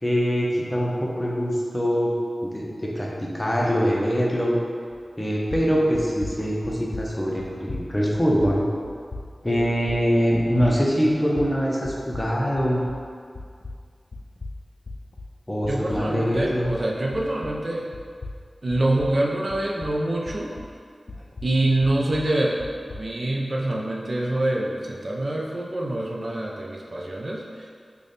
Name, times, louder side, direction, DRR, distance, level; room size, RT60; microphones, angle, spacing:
voice 1, 0.0-4.6 5.2-8.7 9.4-12.8 15.5-16.7, equal, 20° left, -3 dB, 0.6 m, -23 dB
sound 1, 4.9-5.2 5.5-13.1 13.4-17.7 17.9-20.8 21.1-23.1, left 2 dB, 65° left, 0.3 m, -38 dB
voice 2, 15.7-17.9 18.6-20.5 21.4-27.7, right 1 dB, 55° right, -2 dB, 0.4 m, -25 dB
3.3 x 2.1 x 3.9 m, 2.1 s
wide cardioid pair, 60°, 0 cm